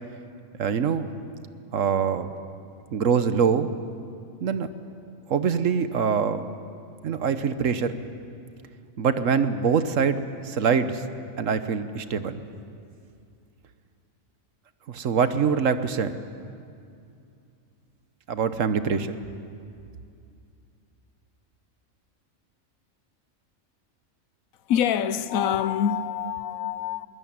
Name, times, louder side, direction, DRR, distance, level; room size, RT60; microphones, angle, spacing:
voice 1, 0.6-1.1 1.7-2.3 2.9-3.7 4.4-4.7 5.3-6.5 7.0-8.0 9.0-11.0 11.4-12.4 14.9-16.1 18.3-19.1, right 6 dB, 70° right, 1.3 m, -24 dB
voice 2, 24.7-27.1, left 9 dB, 80° left, 1.2 m, -25 dB
21.5 x 19.5 x 8.8 m
omnidirectional pair, 1.4 m